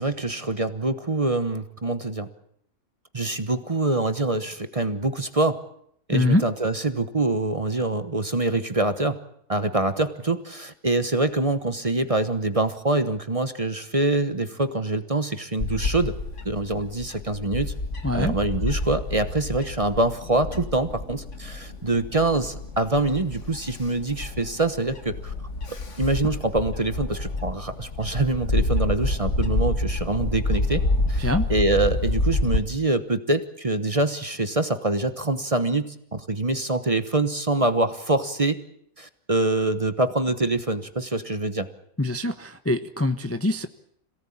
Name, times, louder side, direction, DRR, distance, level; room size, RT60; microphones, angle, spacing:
voice 1, 0.0-2.3 3.1-5.6 6.1-9.2 9.5-16.2 16.4-17.7 18.1-25.3 26.0-38.6 39.0-41.7, right 2 dB, 25° right, 10 dB, 1.1 m, -25 dB
voice 2, 6.1-6.4 18.0-18.3 31.2-31.5 42.0-43.7, left 2 dB, 10° left, 9 dB, 0.8 m, -24 dB
Bird / Wind, 15.6-32.6, left 2 dB, 60° left, 2.3 m, -28 dB
27.0 x 18.0 x 8.7 m, 0.70 s
omnidirectional pair, 1.4 m